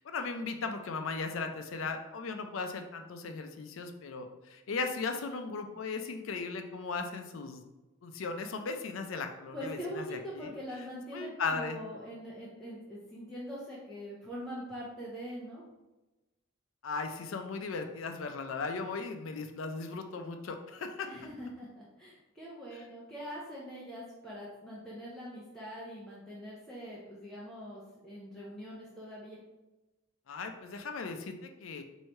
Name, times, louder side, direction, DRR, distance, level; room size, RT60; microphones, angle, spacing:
voice 1, 0.0-7.6 8.0-10.5 11.1-11.8 16.8-21.1 30.3-31.8, left 4 dB, 85° left, 6 dB, 0.4 m, -37 dB
voice 2, 9.5-15.6 21.0-29.4, equal, ahead, -8 dB, 0.6 m, -43 dB
3.1 x 2.7 x 4.4 m, 1.1 s
head